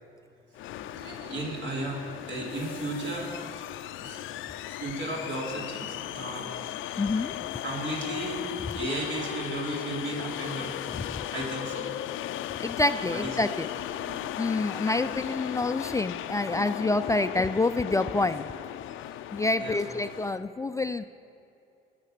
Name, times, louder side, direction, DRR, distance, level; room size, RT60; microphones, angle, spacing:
sound 1, 0.5-20.4, left 13 dB, 85° left, 0.5 m, -37 dB
voice 1, 0.8-2.0 2.3-3.3 4.0-4.3 4.7-6.6 6.9-7.0 7.6-8.4 8.7-10.7 11.0-11.9 13.0-13.4 14.0-15.0 19.6-19.8, right 2 dB, 65° right, -3 dB, 3.8 m, -35 dB
voice 2, 7.0-7.5 10.9-11.2 12.6-13.7 14.4-18.5 19.3-21.1, left 2 dB, 15° left, 11 dB, 0.3 m, -27 dB
20.0 x 6.7 x 6.6 m, 2.7 s
cardioid pair, 90°, 20 cm